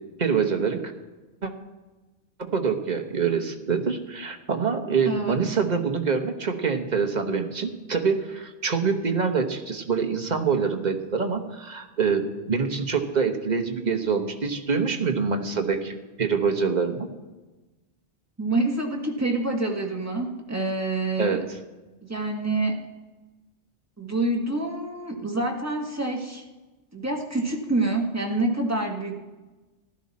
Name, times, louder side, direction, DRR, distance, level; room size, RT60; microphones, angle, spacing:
voice 1, 0.2-0.9 1.4-1.5 2.4-17.1 21.2-21.4, right 5 dB, 40° right, 5 dB, 1.1 m, -25 dB
voice 2, 5.1-5.4 18.4-21.4 22.0-22.8 24.0-26.4 26.9-29.2, right 2 dB, 15° right, 0 dB, 1.6 m, -27 dB
14.5 x 12.0 x 4.2 m, 1.2 s
omnidirectional pair, 1.2 m